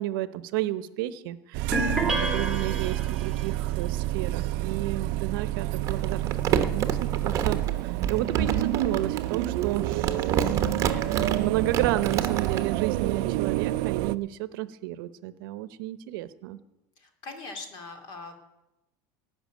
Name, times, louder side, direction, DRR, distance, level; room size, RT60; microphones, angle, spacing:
voice 1, 0.0-10.1 10.5-16.6, right 14 dB, 80° right, 14 dB, 0.8 m, -32 dB
sound 1, 1.5-14.2, right 16 dB, 55° right, 0.5 m, -29 dB
sound 2, 1.7-3.5, right 2 dB, 5° right, 1.3 m, -29 dB
Crumpling crinkling, 5.8-12.6, right 8 dB, 25° right, 1.1 m, -29 dB
voice 2, 17.0-18.4, left 3 dB, 40° left, 5 dB, 2.6 m, -41 dB
18.0 x 6.0 x 9.2 m, 0.94 s
cardioid pair, 170°, 11 cm